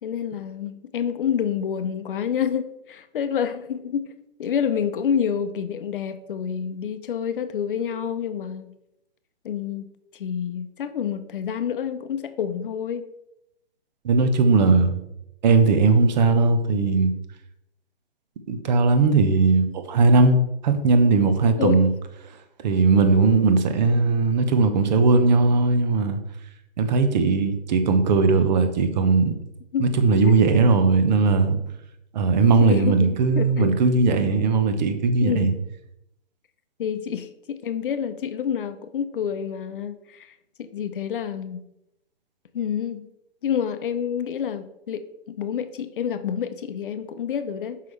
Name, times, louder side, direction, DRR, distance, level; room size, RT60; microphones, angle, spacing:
voice 1, 0.0-4.0 4.4-8.7 9.4-9.9 10.1-13.1 21.6-21.9 29.7-30.3 32.6-33.8 35.2-35.5 36.8-41.6 42.5-43.1 43.4-47.8, left 8 dB, 55° left, 0.7 m, -28 dB
voice 2, 14.0-15.0 15.4-17.1 18.5-21.9 22.6-26.2 26.8-29.4 29.8-31.6 32.1-35.5, right 4 dB, 45° right, 0.9 m, -19 dB
6.0 x 5.6 x 3.2 m
figure-of-eight pair, 135°, 32 cm